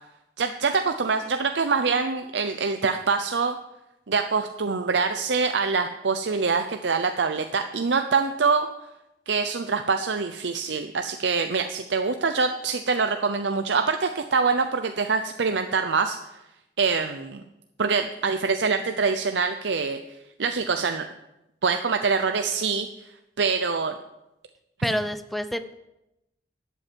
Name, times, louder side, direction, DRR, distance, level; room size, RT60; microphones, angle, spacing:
voice 1, 0.4-3.6 4.1-8.7 9.3-16.2 16.8-17.4 17.8-20.0 20.4-21.1 21.6-22.9 23.4-23.9, right 4 dB, 90° right, 7 dB, 0.7 m, -24 dB
voice 2, 24.8-25.7, equal, ahead, 10 dB, 0.6 m, -28 dB
12.0 x 8.2 x 7.5 m, 0.91 s
head